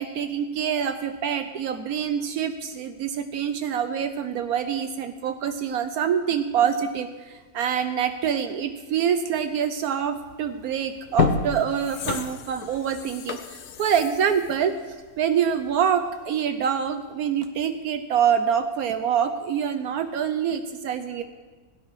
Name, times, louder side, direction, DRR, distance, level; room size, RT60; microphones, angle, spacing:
voice 1, 0.0-14.7 15.2-21.2, right 8 dB, 75° right, 9 dB, 1.1 m, -26 dB
sound 1, 10.4-10.5 11.0-15.7 16.1-16.2, left 6 dB, 80° left, 1.3 m, -30 dB
17.0 x 9.9 x 4.8 m, 1.3 s
omnidirectional pair, 1.6 m